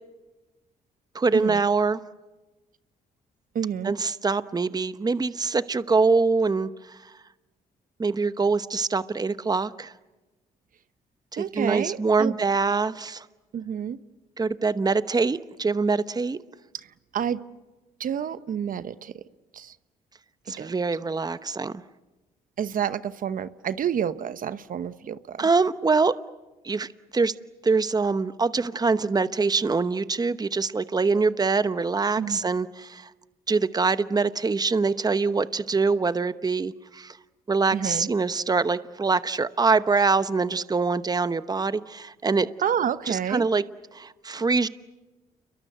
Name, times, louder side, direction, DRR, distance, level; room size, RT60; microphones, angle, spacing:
voice 1, 1.1-2.0 3.8-7.1 8.0-9.9 11.3-13.3 14.4-16.4 20.5-21.8 25.4-26.1 26.6-27.3 27.6-33.1 33.5-37.2 37.5-42.5 43.1-43.6 43.9-44.7, right 4 dB, 25° right, 13 dB, 1.0 m, -24 dB
voice 2, 3.5-3.9 11.4-12.3 13.5-14.0 17.1-17.4 18.0-19.1 19.5-19.7 20.6-20.7 22.6-25.4 32.2-32.4 37.7-38.1 42.6-43.4, right 8 dB, 60° right, 13 dB, 1.0 m, -29 dB
30.0 x 23.0 x 8.0 m, 1.1 s
cardioid pair, 70°, 16 cm